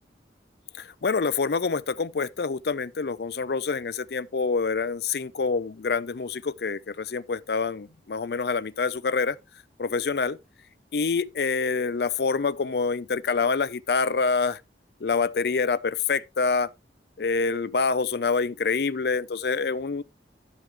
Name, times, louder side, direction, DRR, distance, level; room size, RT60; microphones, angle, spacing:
voice 1, 0.8-9.4 9.8-10.4 10.9-14.6 15.0-16.7 17.2-20.0, left 4 dB, 60° left, 0.5 m, -26 dB
11.0 x 5.5 x 3.3 m
head